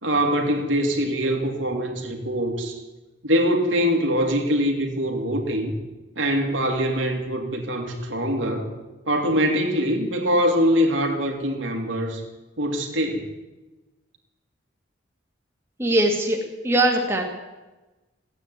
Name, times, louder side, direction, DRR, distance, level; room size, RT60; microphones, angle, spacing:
voice 1, 0.0-2.8 3.2-5.8 6.2-8.7 9.1-12.2 12.6-13.3, equal, 85° right, 2 dB, 2.6 m, -23 dB
voice 2, 15.8-17.2, right 1 dB, 15° right, 0 dB, 2.1 m, -21 dB
15.5 x 9.0 x 9.7 m, 1.1 s
head